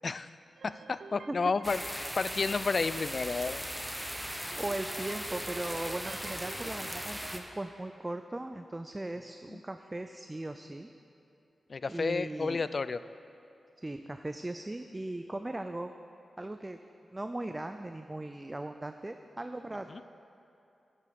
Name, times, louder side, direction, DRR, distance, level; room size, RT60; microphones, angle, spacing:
voice 1, 0.6-3.6 9.5-9.6 11.7-13.0 19.9-20.0, left 4 dB, 55° left, 14 dB, 0.3 m, -31 dB
sound 1, 0.6-7.3, right 3 dB, 75° right, 0.6 m, -51 dB
sound 2, 1.6-7.4, equal, ahead, 1.1 m, -38 dB
voice 2, 4.6-10.9 11.9-12.6 13.8-15.9 16.4-16.8 17.1-19.9, right 1 dB, 25° right, 7 dB, 0.5 m, -38 dB
9.2 x 8.2 x 6.9 m, 2.9 s
cardioid pair, 45°, 0 cm